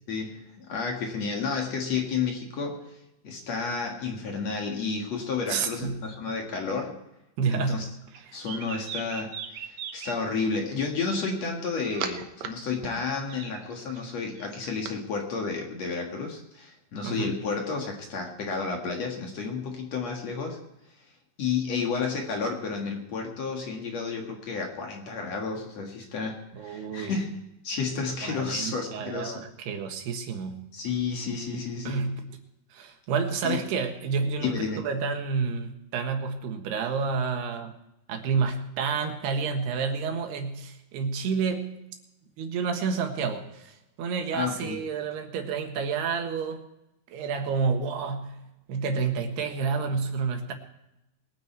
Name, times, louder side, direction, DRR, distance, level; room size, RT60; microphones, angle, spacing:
voice 1, 0.1-3.0 3.2-7.0 7.5-7.9 8.3-20.6 21.4-29.4 30.7-32.1 33.4-33.7 34.4-34.9 44.3-44.8, left 5 dB, 50° left, 1 dB, 2.5 m, -31 dB
voice 2, 5.5-6.1 7.4-7.8 17.0-17.3 26.5-27.1 28.2-30.6 31.9-32.2 32.7-37.7 38.1-41.8 42.4-46.6 47.1-48.4 48.7-50.5, right 5 dB, 90° right, 5 dB, 3.6 m, -29 dB
sound 1, 8.1-10.5 11.3-12.5 12.8-14.9, right 8 dB, 70° right, 1.7 m, -38 dB
22.0 x 9.4 x 4.5 m, 0.88 s
omnidirectional pair, 4.5 m